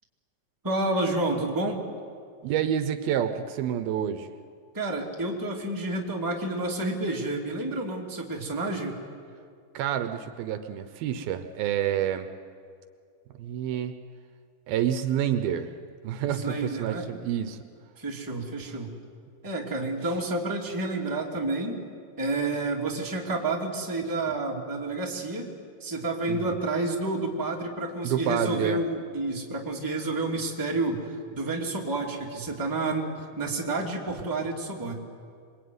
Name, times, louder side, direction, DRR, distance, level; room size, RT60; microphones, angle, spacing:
voice 1, 0.6-1.8 4.7-9.0 16.3-17.0 18.0-18.9 19.4-21.8 22.2-25.5 25.8-31.1 31.3-33.1 33.4-34.9, right 2 dB, 5° right, -1 dB, 2.0 m, -29 dB
voice 2, 2.4-4.3 9.7-12.3 13.4-13.9 14.7-15.7 16.0-17.6 18.6-18.7 26.3-26.6 28.0-28.8, right 10 dB, 75° right, 9 dB, 2.7 m, -28 dB
26.5 x 22.0 x 9.6 m, 2.2 s
omnidirectional pair, 4.5 m